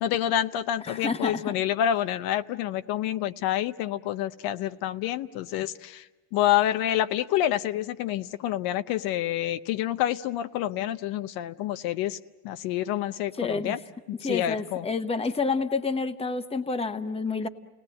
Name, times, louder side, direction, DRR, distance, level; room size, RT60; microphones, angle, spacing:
voice 1, 0.0-6.1 6.3-12.2 12.4-13.8 14.2-14.9, left 12 dB, 85° left, 10 dB, 0.7 m, -28 dB
voice 2, 0.9-1.5 13.3-13.8 14.2-17.5, left 4 dB, 15° left, 8 dB, 1.0 m, -29 dB
29.5 x 18.5 x 7.7 m, 1.2 s
cardioid pair, 115°, 35 cm